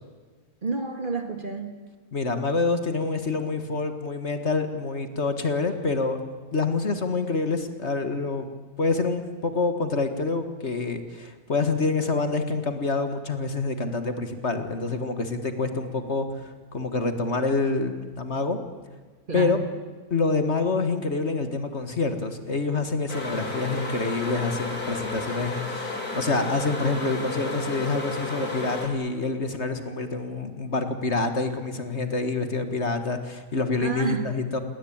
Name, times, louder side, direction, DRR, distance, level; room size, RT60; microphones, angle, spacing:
voice 1, 0.6-1.8 19.3-19.6 33.8-34.3, right 4 dB, 35° right, 7 dB, 2.1 m, -29 dB
voice 2, 2.1-6.2 6.5-8.5 8.8-18.6 19.3-19.6 20.1-34.6, left 3 dB, 50° left, 8 dB, 1.9 m, -27 dB
sound 1, 23.1-28.9, left 2 dB, 85° left, 4.4 m, -32 dB
28.5 x 19.0 x 8.8 m, 1.4 s
omnidirectional pair, 1.6 m